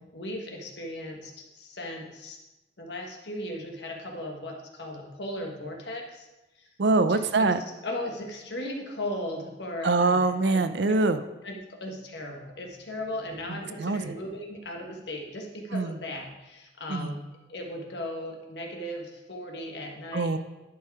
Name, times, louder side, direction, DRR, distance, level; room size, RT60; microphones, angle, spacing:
voice 1, 0.1-2.4 2.8-6.3 6.5-6.7 7.0-7.5 7.8-10.7 11.4-17.2 17.5-20.3, left 1 dB, 70° left, 1 dB, 1.4 m, -37 dB
voice 2, 6.8-7.6 9.8-11.2 13.5-14.2 15.7-15.9 16.9-17.1 20.1-20.4, right 3 dB, 75° right, 11 dB, 0.5 m, -24 dB
11.0 x 4.6 x 4.8 m, 1.0 s
head